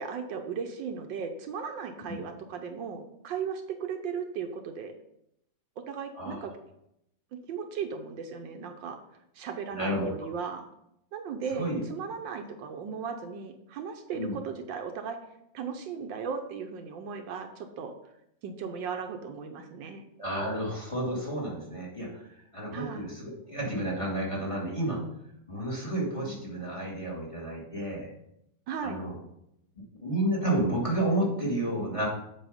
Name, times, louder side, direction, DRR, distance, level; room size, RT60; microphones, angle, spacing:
voice 1, 0.0-4.9 5.9-6.5 7.3-9.0 9.3-10.7 11.1-15.2 15.5-17.9 18.4-20.0 22.7-23.1 28.7-29.0, right 6 dB, 75° right, 5 dB, 1.4 m, -36 dB
voice 2, 9.7-10.1 11.6-11.8 14.1-14.4 20.2-22.2 22.5-25.0 25.5-28.1 28.8-29.1 30.0-32.1, right 1 dB, 15° left, -3 dB, 2.1 m, -31 dB
7.6 x 5.3 x 5.1 m, 0.79 s
omnidirectional pair, 2.1 m